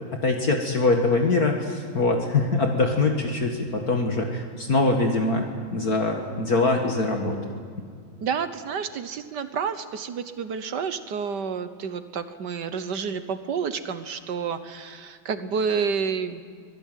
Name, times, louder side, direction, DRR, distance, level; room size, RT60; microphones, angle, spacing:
voice 1, 0.2-7.4, left 3 dB, 50° left, 2 dB, 2.3 m, -23 dB
voice 2, 8.2-16.4, right 6 dB, 60° right, 10 dB, 1.6 m, -29 dB
25.0 x 17.5 x 9.3 m, 2.1 s
omnidirectional pair, 2.2 m